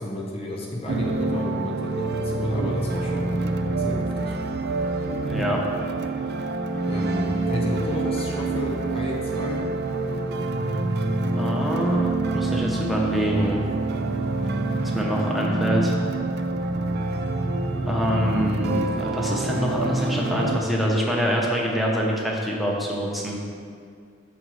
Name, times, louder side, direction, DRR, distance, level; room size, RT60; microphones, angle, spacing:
voice 1, 0.0-3.4 3.6-4.4 6.9-9.7, left 1 dB, 30° left, -2 dB, 0.8 m, -32 dB
sound 1, 0.9-20.6, right 2 dB, 55° right, 0.4 m, -26 dB
voice 2, 5.2-5.6 11.4-13.6 14.9-15.9 17.8-23.4, equal, ahead, -3 dB, 0.9 m, -25 dB
6.2 x 3.9 x 6.3 m, 2.2 s
head